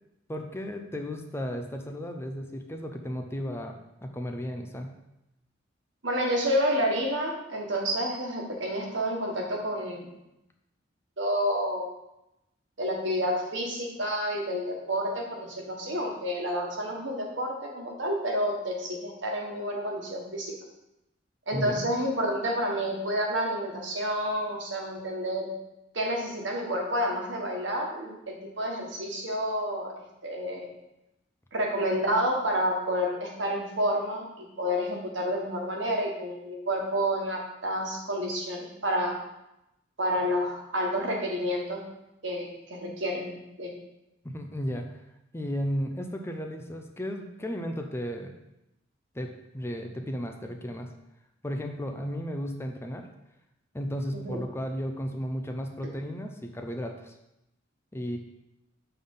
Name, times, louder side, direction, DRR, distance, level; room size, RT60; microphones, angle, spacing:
voice 1, 0.3-3.7 4.0-4.9 21.5-21.9 44.2-45.0 45.3-48.3 49.1-50.9 51.4-53.1 53.7-57.1 57.9-58.2, equal, 15° left, 4 dB, 0.5 m, -34 dB
voice 2, 6.0-10.1 11.2-11.9 12.8-20.5 21.5-25.5 25.9-29.9 30.2-30.7 31.5-39.2 40.0-41.8 42.2-43.7 54.1-54.4, equal, 75° right, 0 dB, 1.5 m, -29 dB
6.8 x 3.9 x 5.5 m, 0.88 s
head